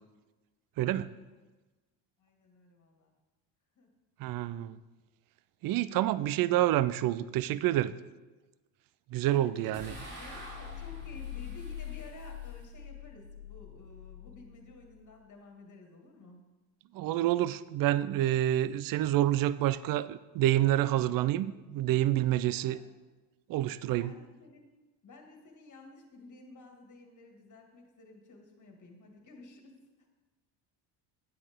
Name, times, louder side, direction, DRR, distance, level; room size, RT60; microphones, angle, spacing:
voice 1, 0.8-1.1 4.2-4.8 5.6-7.9 9.1-9.9 16.9-22.8 23.5-24.1, right 13 dB, 45° right, 17 dB, 0.5 m, -28 dB
voice 2, 2.2-3.1 3.8-3.9 9.3-16.4 20.9-21.1 22.4-22.8 24.0-24.7 25.0-30.1, left 3 dB, 35° left, 3 dB, 2.1 m, -53 dB
sound 1, 9.7-15.1, left 6 dB, 75° right, 3.4 m, -43 dB
10.5 x 8.0 x 3.6 m, 1.2 s
supercardioid pair, 80°, 49 cm